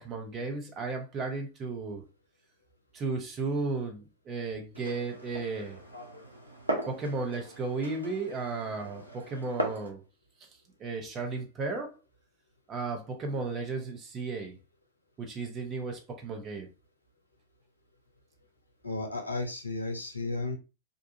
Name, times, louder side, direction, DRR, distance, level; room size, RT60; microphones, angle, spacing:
voice 1, 0.0-2.1 2.9-5.8 6.9-10.0 10.8-11.9 12.7-14.6 15.2-16.7, right 3 dB, 30° right, 0.7 m, -34 dB
Glass, 4.7-9.9, right 1 dB, 85° right, 0.5 m, -38 dB
voice 2, 18.8-20.6, left 2 dB, 80° left, 0.4 m, -33 dB
2.6 x 2.3 x 2.7 m
figure-of-eight pair, 90°, 0 cm